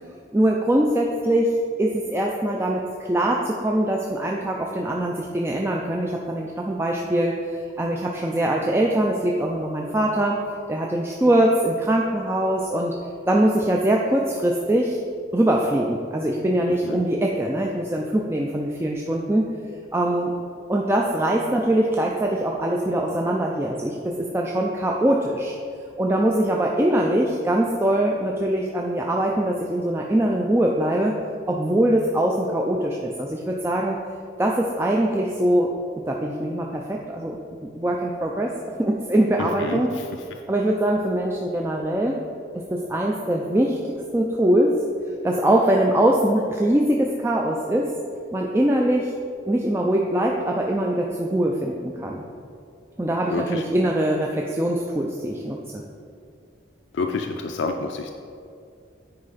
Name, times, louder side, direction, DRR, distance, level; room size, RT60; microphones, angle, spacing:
voice 1, 0.3-10.4 10.7-12.9 13.3-15.0 15.3-19.5 19.9-20.3 20.7-25.6 26.0-31.2 31.5-34.0 34.4-35.7 36.1-37.4 37.8-38.5 38.8-39.9 40.5-42.2 42.5-44.8 45.2-47.9 48.3-49.1 49.5-52.3 53.0-55.8, right 1 dB, 15° right, -1 dB, 0.3 m, -22 dB
voice 2, 39.4-40.1 53.3-53.6 56.9-58.1, left 3 dB, 80° left, 4 dB, 0.4 m, -28 dB
9.6 x 4.7 x 4.0 m, 2.4 s
head